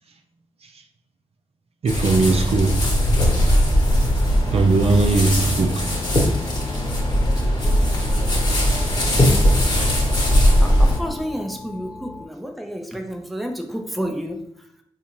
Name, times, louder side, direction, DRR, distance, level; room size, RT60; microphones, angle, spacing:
voice 1, 1.8-2.8 4.5-6.0, right 3 dB, 60° right, 0.4 m, -19 dB
sound 1, 1.9-11.0, equal, 40° left, 1.1 m, -19 dB
sound 2, 3.8-12.3, left 3 dB, 70° left, 1.0 m, -39 dB
voice 2, 10.6-14.7, equal, ahead, 0.5 m, -30 dB
4.0 x 2.5 x 3.0 m
cardioid pair, 70°, 11 cm